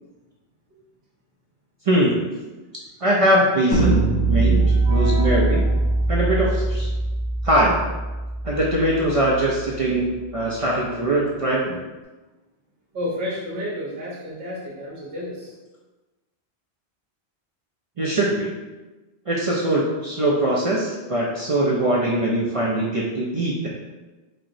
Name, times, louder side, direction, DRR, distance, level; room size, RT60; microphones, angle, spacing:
voice 1, 1.9-2.2 3.0-4.0 4.3-5.6 6.1-6.9 7.4-7.8 8.4-10.1 10.3-11.8 18.0-18.5 19.3-23.7, right 1 dB, 50° right, -4 dB, 0.4 m, -21 dB
sound 1, 3.7-9.7, right 2 dB, 85° left, 1.2 m, -22 dB
voice 2, 4.6-6.1 12.9-15.6, equal, 65° right, -6 dB, 1.2 m, -32 dB
4.4 x 2.8 x 2.6 m, 1.2 s
omnidirectional pair, 1.1 m